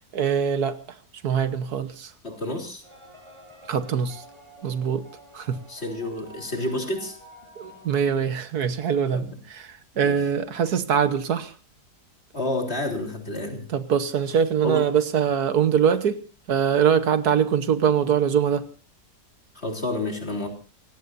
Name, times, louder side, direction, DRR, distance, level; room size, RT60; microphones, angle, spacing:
voice 1, 0.1-0.8 1.2-2.1 3.7-4.2 4.6-5.0 5.3-5.6 7.6-11.5 13.7-16.2 16.5-18.6, right 7 dB, 75° right, 11 dB, 1.6 m, -23 dB
voice 2, 2.2-2.8 5.7-7.2 9.1-9.4 9.9-10.1 12.3-13.7 14.6-14.9 19.6-20.5, left 1 dB, 40° left, 2 dB, 3.8 m, -29 dB
sound 1, 2.8-8.0, equal, 15° right, 7.5 m, -49 dB
29.0 x 17.5 x 2.6 m, 0.35 s
omnidirectional pair, 1.7 m